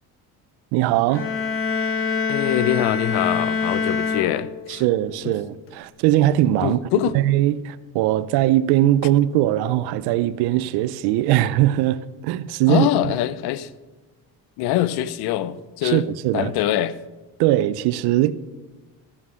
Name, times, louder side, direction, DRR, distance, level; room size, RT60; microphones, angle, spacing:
voice 1, 0.7-1.3 4.7-6.8 7.1-12.9 15.8-16.5 17.4-18.3, right 14 dB, 85° right, 0.6 m, -20 dB
sound 1, 1.1-4.9, left 5 dB, 35° left, 1.2 m, -25 dB
voice 2, 2.3-4.8 5.2-5.3 6.6-7.1 12.7-13.7 14.6-16.0 16.3-17.0, left 12 dB, 85° left, 0.6 m, -23 dB
13.5 x 5.5 x 6.2 m
cardioid pair, 105°, 37 cm